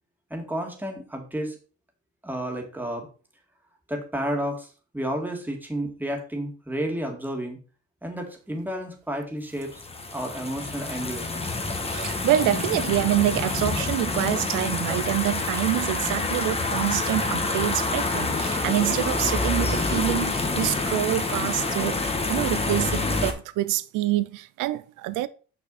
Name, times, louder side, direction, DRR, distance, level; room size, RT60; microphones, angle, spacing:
voice 1, 0.3-1.6 2.2-3.1 3.9-4.7 4.9-7.6 8.0-9.8 10.1-11.5, right 1 dB, 5° right, 2.1 m, -31 dB
sound 1, 9.7-23.3, left 3 dB, 20° left, 1.3 m, -27 dB
voice 2, 11.9-25.3, right 14 dB, 85° right, 0.5 m, -26 dB
5.9 x 5.9 x 4.1 m
cardioid pair, 90°, 30 cm